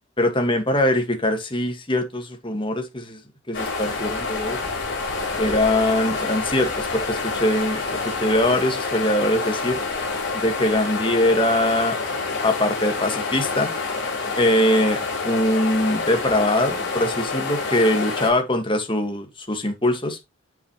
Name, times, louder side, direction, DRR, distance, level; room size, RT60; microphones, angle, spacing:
voice 1, 0.2-3.2 3.5-4.6 5.4-9.8 10.3-12.0 12.4-13.7 14.3-15.0 15.2-20.2, left 1 dB, 25° left, 2.0 m, -22 dB
sound 1, 3.5-18.3, left 4 dB, 55° left, 5.3 m, -27 dB
9.4 x 7.4 x 3.3 m
head